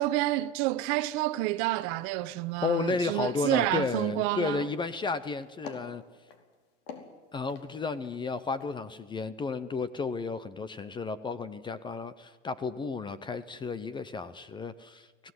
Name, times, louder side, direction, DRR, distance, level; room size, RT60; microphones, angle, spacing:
voice 1, 0.0-4.6, right 17 dB, 45° right, 1.2 m, -29 dB
sound 1, 2.1-2.3 2.6-2.8 3.2-3.4 3.8-4.2 4.4-5.2 5.6-6.4 6.9-8.2 8.5-8.7, left 5 dB, 55° left, 4.7 m, -46 dB
voice 2, 2.6-6.0 7.3-15.3, left 4 dB, 15° left, 0.8 m, -33 dB
24.5 x 18.0 x 9.5 m
hypercardioid pair, 135°, 36 cm